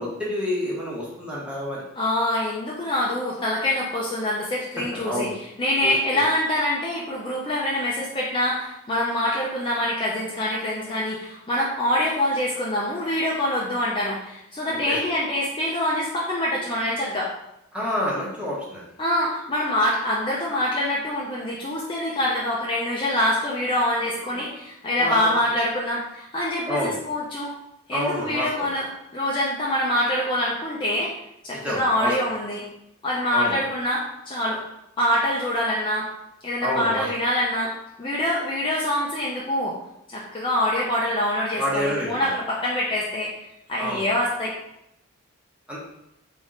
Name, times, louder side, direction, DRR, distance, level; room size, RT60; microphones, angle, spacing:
voice 1, 0.0-1.8 4.9-5.3 5.8-6.2 14.9-15.0 17.7-18.8 24.3-24.5 25.0-25.3 26.7-27.0 27.9-28.7 31.6-32.1 33.3-33.6 36.6-37.1 41.6-42.3 43.8-44.0 45.7-45.8, left 1 dB, 5° right, -6 dB, 1.1 m, -28 dB
voice 2, 2.0-17.3 19.0-27.5 27.9-28.9 29.1-31.1 31.4-32.6 33.0-34.6 35.0-36.1 36.4-37.7 38.0-39.7 40.1-43.3 43.7-44.5, left 1 dB, 25° left, -5 dB, 0.6 m, -25 dB
3.7 x 3.5 x 3.9 m, 0.83 s
head